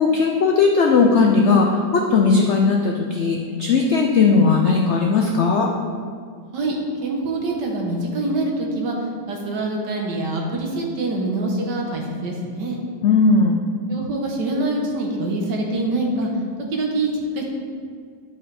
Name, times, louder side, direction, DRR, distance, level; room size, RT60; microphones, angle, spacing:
voice 1, 0.0-5.7 13.0-13.6, left 4 dB, 70° left, 1 dB, 0.6 m, -17 dB
voice 2, 7.0-9.0 9.3-12.8 13.9-16.3 16.7-17.4, right 2 dB, 75° right, 0 dB, 1.8 m, -25 dB
11.0 x 5.5 x 3.4 m, 2.1 s
omnidirectional pair, 1.9 m